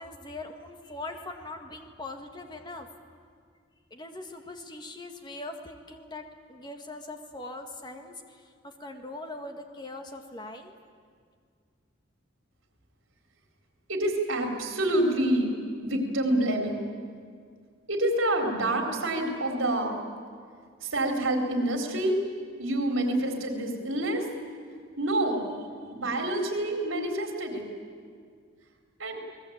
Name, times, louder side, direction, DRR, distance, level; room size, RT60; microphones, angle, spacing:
voice 1, 0.0-2.9 3.9-10.7, left 2 dB, 20° left, 4 dB, 1.9 m, -41 dB
voice 2, 13.9-15.6 15.8-16.9 17.9-20.0 20.8-22.2 22.6-24.3 25.0-25.5 25.9-27.7 29.0-29.2, right 1 dB, 80° right, 3 dB, 4.0 m, -27 dB
29.5 x 19.5 x 8.8 m, 2.1 s
head